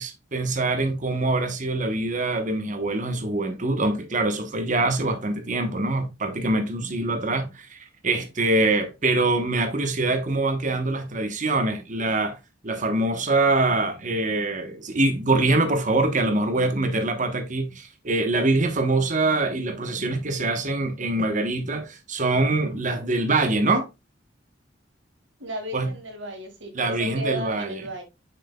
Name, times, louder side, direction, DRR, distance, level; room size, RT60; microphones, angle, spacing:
voice 1, 0.0-7.8 8.0-12.4 12.6-23.9 25.7-25.9 26.7-27.8, right 2 dB, 45° right, 1.1 m, -24 dB
voice 2, 25.4-28.0, right 1 dB, 90° right, 2.1 m, -34 dB
6.6 x 6.5 x 2.3 m
head